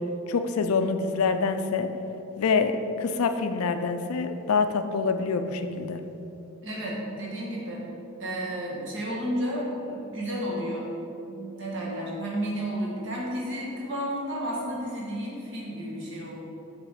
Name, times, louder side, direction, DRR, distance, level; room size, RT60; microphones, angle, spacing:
voice 1, 0.3-1.9 2.4-6.0, left 4 dB, 75° left, 8 dB, 0.4 m, -26 dB
voice 2, 6.6-7.8 8.2-16.3, equal, 55° right, -5 dB, 1.4 m, -32 dB
5.8 x 3.3 x 5.5 m, 2.9 s
head